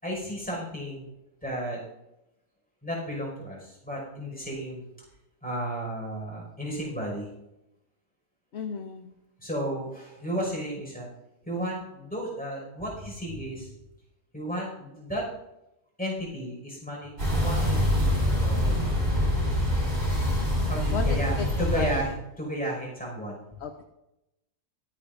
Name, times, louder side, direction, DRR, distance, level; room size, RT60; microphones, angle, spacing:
voice 1, 0.0-1.1 1.4-1.8 2.8-4.9 5.4-7.3 9.4-11.1 11.5-13.7 14.3-15.2 16.0-18.9 20.6-22.1 22.4-23.4, equal, 5° left, -3 dB, 5.5 m, -33 dB
voice 2, 8.5-9.1 20.9-22.1 23.6-23.8, left 5 dB, 55° left, 5 dB, 1.1 m, -34 dB
sound 1, 17.2-22.1, left 1 dB, 65° right, 5.9 m, -25 dB
23.5 x 9.0 x 2.6 m, 0.91 s
omnidirectional pair, 1.4 m